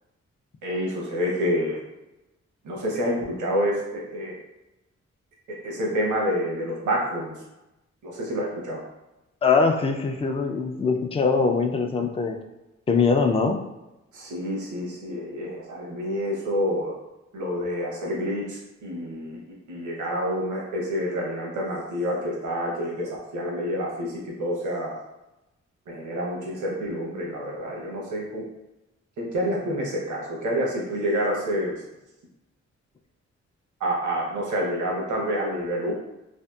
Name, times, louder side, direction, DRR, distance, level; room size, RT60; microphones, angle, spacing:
voice 1, 0.6-1.8 2.6-4.4 5.5-7.3 8.0-8.8 14.1-17.0 17.3-19.4 19.7-25.0 25.9-28.5 29.2-31.8 33.8-35.9, equal, 80° right, -2 dB, 0.8 m, -28 dB
voice 2, 9.4-12.4 12.9-13.6, left 4 dB, 20° left, 4 dB, 0.3 m, -22 dB
2.7 x 2.5 x 2.3 m, 0.98 s
cardioid pair, 55°, 30 cm